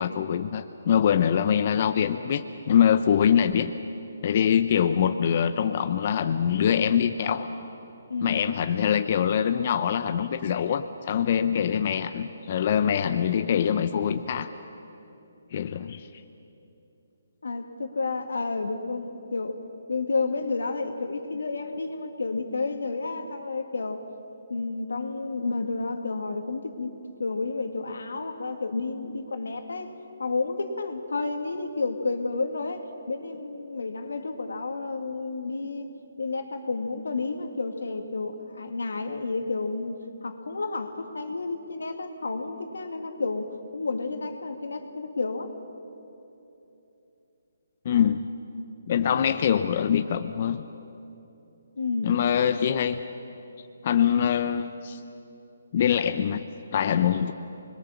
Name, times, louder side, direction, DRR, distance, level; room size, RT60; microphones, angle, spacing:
voice 1, 0.0-3.7 4.2-7.5 8.2-14.5 15.5-16.1 47.8-48.3 48.9-50.6 52.0-53.0 53.8-55.0 55.7-56.5 56.7-57.3, left 8 dB, 40° left, 8 dB, 0.7 m, -24 dB
voice 2, 8.1-8.5 17.4-19.6 19.9-24.0 24.5-26.9 27.2-29.9 30.2-35.9 36.2-45.5 51.8-52.2, left 3 dB, 90° left, 6 dB, 2.2 m, -31 dB
25.0 x 21.5 x 7.2 m, 2.9 s
hypercardioid pair, 165°, 0 cm